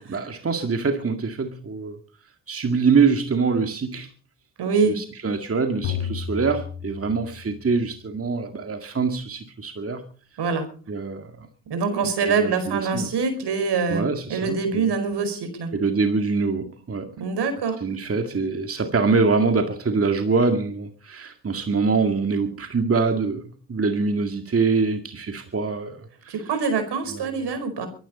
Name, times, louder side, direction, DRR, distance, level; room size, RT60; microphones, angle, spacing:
voice 1, 0.0-2.0 2.5-4.1 4.9-10.0 10.9-11.3 12.3-13.1 13.9-14.9 15.7-17.1 17.8-23.4 23.7-26.3 27.1-27.3, right 4 dB, 30° right, 2.1 m, -24 dB
voice 2, 4.6-5.0 10.4-10.7 11.7-14.0 14.3-15.7 17.2-17.8 26.3-27.9, right 5 dB, 60° right, 4.9 m, -24 dB
sound 1, 5.8-7.8, left 8 dB, 75° left, 3.7 m, -32 dB
23.5 x 11.5 x 4.3 m
hypercardioid pair, 60°, 45 cm